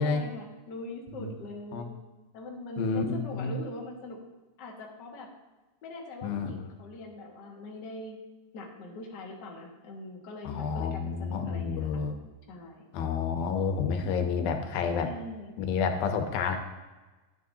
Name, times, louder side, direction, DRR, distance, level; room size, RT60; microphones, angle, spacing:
voice 1, 0.0-1.9 2.3-4.2 4.6-5.3 5.8-8.2 8.5-12.0 12.5-12.9 15.0-15.5, left 2 dB, 50° left, -1 dB, 1.2 m, -42 dB
voice 2, 2.8-3.6 6.2-6.6 10.5-12.2 12.9-15.1 15.6-16.6, left 5 dB, 85° left, 6 dB, 2.7 m, -29 dB
13.0 x 8.9 x 2.8 m, 1.2 s
omnidirectional pair, 4.1 m